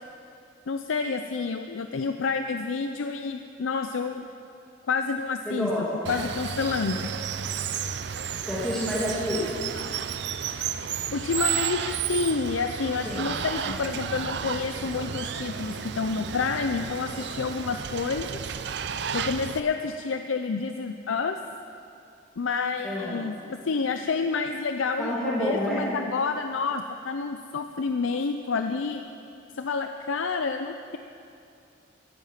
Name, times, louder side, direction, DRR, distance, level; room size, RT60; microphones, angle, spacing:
voice 1, 0.7-4.3 4.9-7.1 11.1-18.4 19.1-21.4 22.4-29.0 29.5-31.0, left 4 dB, 85° left, 7 dB, 0.5 m, -29 dB
voice 2, 5.5-6.3 8.5-9.5 13.0-13.9 14.8-15.0 22.8-23.2 25.0-25.9, equal, ahead, -10 dB, 2.4 m, -30 dB
Water, 6.1-19.6, right 8 dB, 60° right, 0.5 m, -32 dB
15.5 x 11.0 x 5.8 m, 2.6 s
head